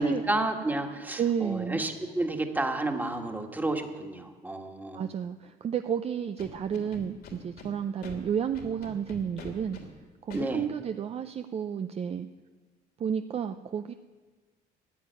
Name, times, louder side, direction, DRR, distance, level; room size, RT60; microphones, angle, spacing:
voice 1, 0.0-5.1 10.3-10.7, right 2 dB, 10° right, 4 dB, 1.7 m, -31 dB
voice 2, 1.2-1.8 4.9-9.8 10.2-12.3 13.0-13.9, right 8 dB, 35° right, 8 dB, 0.5 m, -31 dB
Scratching (performance technique), 6.4-7.7 8.0-8.1 8.5-9.8 10.3-10.4, left 3 dB, 70° left, 3.1 m, -43 dB
14.5 x 8.3 x 9.4 m, 1.4 s
cardioid pair, 110°, 17 cm